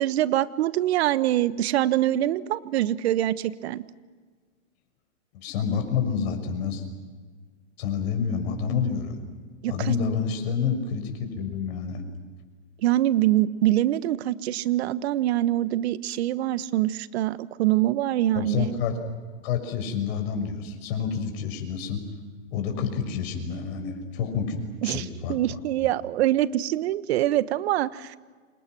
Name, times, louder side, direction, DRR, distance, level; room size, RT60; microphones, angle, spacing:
voice 1, 0.0-3.8 9.6-9.9 12.8-18.7 24.8-28.2, right 13 dB, 50° right, 15 dB, 1.3 m, -24 dB
voice 2, 5.3-6.8 7.8-9.2 9.7-12.0 18.3-18.9 19.4-22.0 22.5-25.4, left 6 dB, 50° left, 5 dB, 6.3 m, -28 dB
30.0 x 27.0 x 6.2 m, 1.5 s
hypercardioid pair, 135°, 40 cm